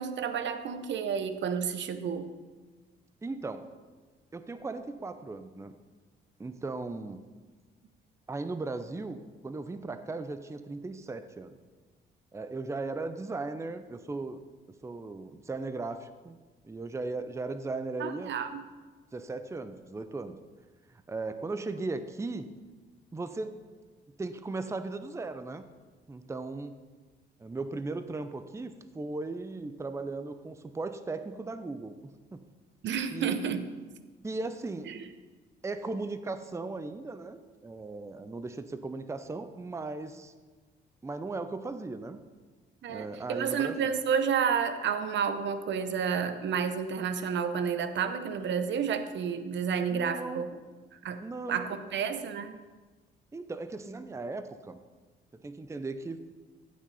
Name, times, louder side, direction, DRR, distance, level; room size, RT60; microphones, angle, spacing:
voice 1, 0.0-2.3 18.0-18.6 32.8-33.7 34.9-35.0 42.8-50.5 50.9-51.2 51.5-52.6, right 7 dB, 65° right, 10 dB, 0.8 m, -30 dB
voice 2, 3.2-3.7 4.3-5.8 6.4-7.2 8.3-9.2 9.4-11.5 12.3-14.4 14.8-16.4 16.6-18.3 19.1-20.4 20.9-22.5 23.1-23.6 24.2-25.6 26.1-26.7 27.4-32.0 32.3-32.4 33.1-33.4 34.2-34.9 35.6-40.3 41.0-42.2 42.9-43.8 49.9-50.4 51.2-51.9 53.3-54.8 55.3-56.2, right 3 dB, 15° right, 10 dB, 0.6 m, -37 dB
14.5 x 6.4 x 4.1 m, 1.3 s
cardioid pair, 90°, 20 cm